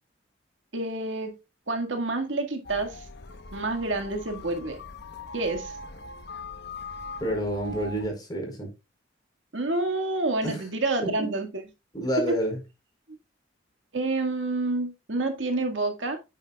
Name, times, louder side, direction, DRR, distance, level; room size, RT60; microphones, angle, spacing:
voice 1, 0.7-1.3 1.7-3.1 3.5-4.8 5.3-5.7 9.5-11.6 12.2-12.4 13.9-16.2, right 2 dB, 75° right, 1.9 m, -28 dB
sound 1, 2.6-8.1, left 2 dB, 60° left, 1.1 m, -41 dB
voice 2, 7.2-8.7 10.4-10.6 11.0-11.1 11.9-12.6, right 1 dB, 20° left, 4.8 m, -29 dB
9.5 x 9.3 x 2.4 m
head